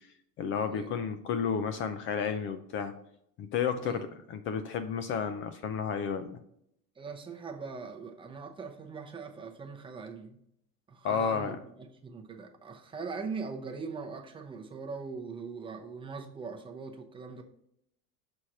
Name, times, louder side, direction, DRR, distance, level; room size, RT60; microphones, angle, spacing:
voice 1, 0.4-2.9 3.4-6.4 11.0-11.6, left 6 dB, 35° left, 0.5 m, -32 dB
voice 2, 7.0-10.4 10.9-17.4, right 4 dB, 15° right, 0.7 m, -41 dB
6.4 x 4.3 x 6.1 m
cardioid pair, 165°, 35 cm